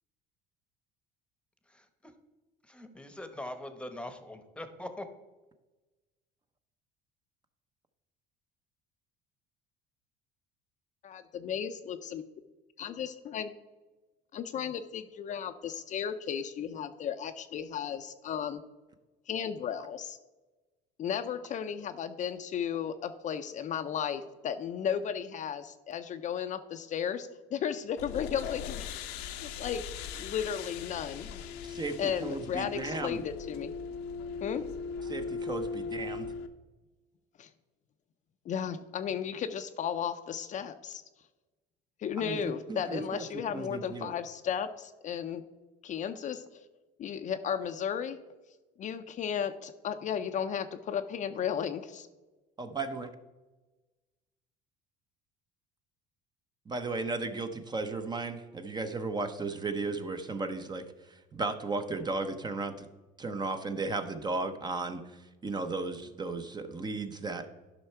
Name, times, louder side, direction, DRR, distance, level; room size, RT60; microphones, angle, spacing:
voice 1, 1.7-2.1 2.6-5.1, left 1 dB, 5° left, 9 dB, 1.0 m, -42 dB
voice 2, 11.0-12.2 12.8-13.5 14.3-18.6 19.3-20.2 21.0-28.9 29.2-29.8 30.2-31.3 32.0-33.7 34.4-34.6 37.4-37.5 38.5-41.0 42.0-45.4 45.8-46.4 47.0-48.2 48.8-52.1, left 8 dB, 45° left, 8 dB, 0.5 m, -34 dB
sound 1, 28.0-36.5, left 5 dB, 85° left, 0.8 m, -39 dB
voice 3, 31.7-33.2 35.1-36.3 42.2-43.2 43.5-44.1 52.6-53.1 56.7-62.7 63.2-67.5, right 3 dB, 25° right, 8 dB, 0.7 m, -35 dB
11.0 x 5.6 x 4.4 m, 1.2 s
cardioid pair, 115°, 18 cm